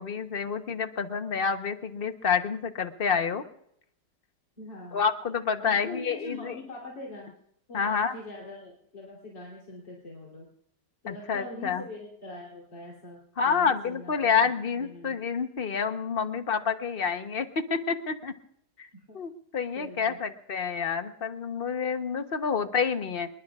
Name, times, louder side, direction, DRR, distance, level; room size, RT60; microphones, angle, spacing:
voice 1, 0.0-3.4 4.9-6.6 7.7-8.1 11.1-11.8 13.4-18.3 18.8-18.9 19.1-23.3, left 6 dB, 40° left, 8 dB, 1.0 m, -28 dB
voice 2, 4.6-5.1 5.6-7.3 7.7-10.5 11.0-14.3 14.8-15.2 18.9-19.2 19.7-20.2, left 2 dB, 85° left, -4 dB, 3.9 m, -42 dB
27.0 x 21.5 x 2.4 m, 0.72 s
omnidirectional pair, 1.9 m